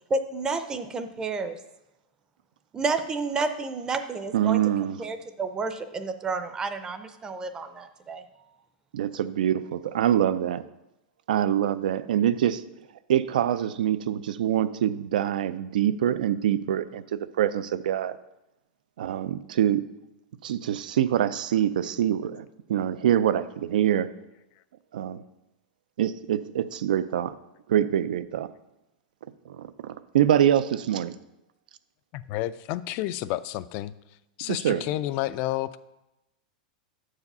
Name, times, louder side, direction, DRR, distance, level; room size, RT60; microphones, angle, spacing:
voice 1, 0.1-1.6 2.7-4.6 5.0-8.2, right 4 dB, 15° right, 9 dB, 0.5 m, -30 dB
voice 2, 4.3-5.0 8.9-10.6 11.3-12.6 13.1-18.2 19.0-19.8 20.4-24.1 24.9-25.2 26.0-27.4 27.7-28.5 29.5-31.2 34.4-34.8, right 10 dB, 85° right, 14 dB, 0.4 m, -25 dB
voice 3, 32.1-33.9 34.4-35.8, left 15 dB, 45° left, 16 dB, 0.3 m, -30 dB
7.6 x 4.8 x 5.4 m, 0.93 s
supercardioid pair, 145°, 4 cm